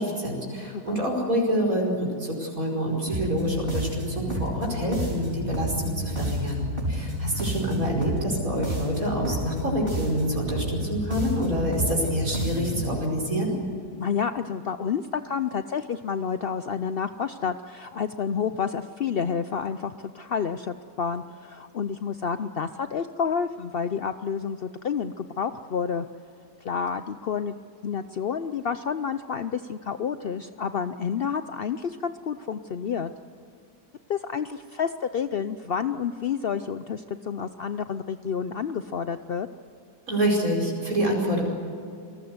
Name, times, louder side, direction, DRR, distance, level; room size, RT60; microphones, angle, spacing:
voice 1, 0.0-13.5 40.1-41.4, equal, 50° right, -1 dB, 5.6 m, -27 dB
voice 2, 0.7-1.0 14.0-26.1 26.6-27.6 27.8-33.1 34.1-39.5, left 6 dB, 70° left, 10 dB, 0.5 m, -29 dB
sound 1, 3.1-13.0, equal, 30° right, 5.2 m, -30 dB
28.0 x 19.0 x 8.0 m, 2.5 s
omnidirectional pair, 1.8 m